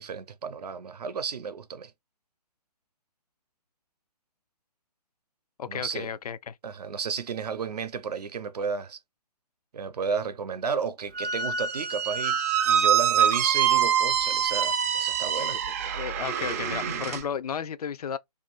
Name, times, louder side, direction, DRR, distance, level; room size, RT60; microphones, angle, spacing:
voice 1, 0.0-1.9 5.7-6.1 6.6-9.0 9.7-15.6, right 6 dB, 75° right, 0.6 m, -33 dB
voice 2, 5.6-6.6 15.5-18.2, left 8 dB, 70° left, 0.4 m, -34 dB
Squeak, 11.1-17.2, right 8 dB, 25° right, 0.3 m, -25 dB
2.5 x 2.4 x 3.8 m
hypercardioid pair, 145°, 20 cm